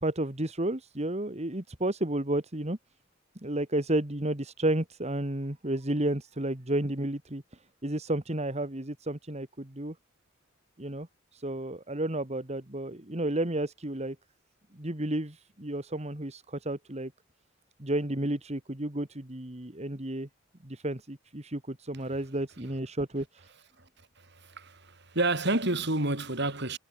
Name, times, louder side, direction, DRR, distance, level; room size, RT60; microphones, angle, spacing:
voice 1, 0.0-2.8 3.4-7.4 7.8-10.0 10.8-11.1 11.3-14.2 14.7-17.1 17.8-20.3 20.6-23.5, right 1 dB, 35° right, 2.2 m, -32 dB
voice 2, 24.2-26.8, right 2 dB, 60° right, 6.5 m, -29 dB
head